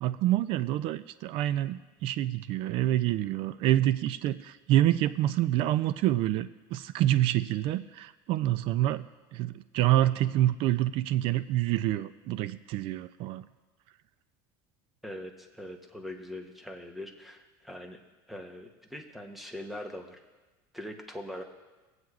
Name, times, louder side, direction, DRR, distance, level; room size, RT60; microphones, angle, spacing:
voice 1, 0.0-9.0 9.3-13.5, right 13 dB, 55° right, 14 dB, 0.4 m, -27 dB
voice 2, 15.0-18.0 18.3-20.2 20.7-21.4, left 1 dB, ahead, 3 dB, 0.8 m, -42 dB
20.5 x 7.9 x 2.4 m, 1.2 s
cardioid pair, 145°, 11 cm